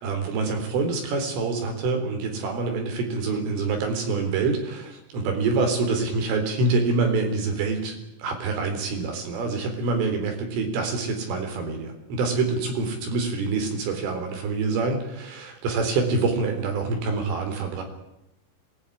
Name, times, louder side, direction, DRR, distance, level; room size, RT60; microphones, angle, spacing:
voice 1, 0.0-17.8, right 3 dB, 85° right, 4 dB, 6.4 m, -26 dB
23.0 x 19.5 x 9.9 m, 0.87 s
omnidirectional pair, 5.5 m